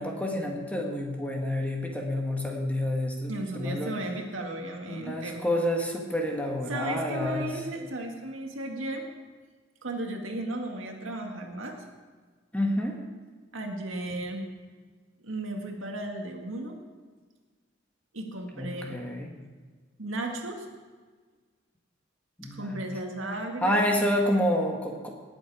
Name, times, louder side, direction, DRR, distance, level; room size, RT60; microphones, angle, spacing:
voice 1, 0.0-3.9 4.9-7.5 12.5-12.9 18.6-19.3 22.4-22.8 23.6-25.1, left 1 dB, 5° left, 1 dB, 1.6 m, -28 dB
voice 2, 3.3-5.4 6.7-9.0 9.8-11.8 13.5-14.5 15.2-16.8 18.1-19.0 20.0-20.7 22.5-23.8, right 1 dB, 85° right, 2 dB, 1.9 m, -35 dB
19.0 x 7.9 x 4.8 m, 1.5 s
head